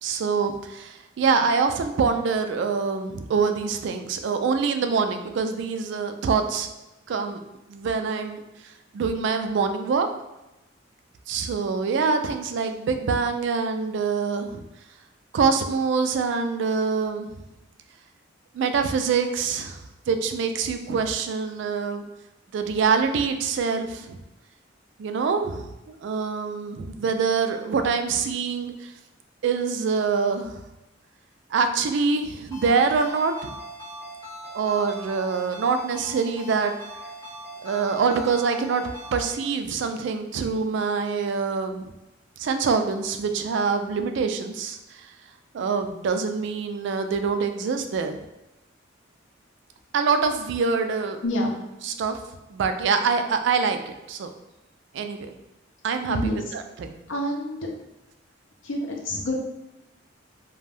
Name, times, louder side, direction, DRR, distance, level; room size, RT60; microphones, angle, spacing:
voice 1, 0.0-6.7 7.1-7.4 7.7-8.4 8.9-10.1 11.3-14.6 15.3-17.3 18.5-19.8 20.1-22.0 22.5-24.2 25.0-28.9 29.4-30.6 31.5-33.5 34.5-36.7 37.6-41.9 42.4-45.1 45.5-48.2 49.9-51.2 52.0-52.2 52.5-54.3 54.9-55.3 55.8-57.0, right 5 dB, 65° right, 7 dB, 0.3 m, -25 dB
Ringtone, 32.5-39.4, right 1 dB, 20° left, 1.1 m, -41 dB
voice 2, 56.1-56.4 57.1-57.7 58.6-59.4, left 1 dB, 70° left, 0 dB, 0.6 m, -27 dB
2.5 x 2.2 x 3.3 m, 0.99 s
head